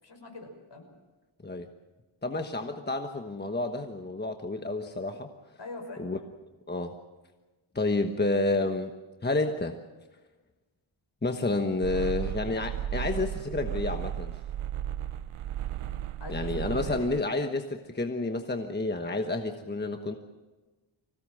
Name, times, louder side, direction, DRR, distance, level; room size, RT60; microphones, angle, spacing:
voice 1, 0.0-0.9 5.6-6.1 16.2-17.1, left 2 dB, 55° left, 3 dB, 5.9 m, -42 dB
voice 2, 2.2-5.3 6.0-6.2 6.7-6.9 7.7-8.9 9.2-9.8 11.2-14.3 16.3-20.2, left 2 dB, 20° left, 5 dB, 1.2 m, -30 dB
sound 1, 11.8-17.2, right 10 dB, 80° right, 0.7 m, -34 dB
25.0 x 17.5 x 7.7 m, 1.2 s
wide cardioid pair, 115°, 50 cm